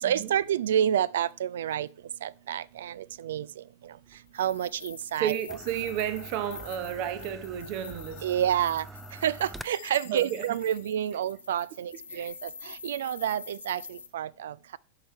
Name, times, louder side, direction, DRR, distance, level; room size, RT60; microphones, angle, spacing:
voice 1, 0.0-1.9 2.2-3.9 4.4-5.3 8.2-8.9 9.2-14.8, right 10 dB, 60° right, 0.3 m, -29 dB
sound 1, 4.1-9.6, right 2 dB, 5° right, 0.5 m, -46 dB
sound 2, 4.3-14.1, left 5 dB, 75° left, 1.0 m, -46 dB
voice 2, 5.2-8.2 10.1-10.6 12.1-12.3, right 10 dB, 45° right, 0.8 m, -32 dB
sound 3, 8.1-8.9 9.7-11.2, left 16 dB, 50° left, 0.9 m, -53 dB
12.0 x 5.8 x 4.4 m
figure-of-eight pair, 90°, 0 cm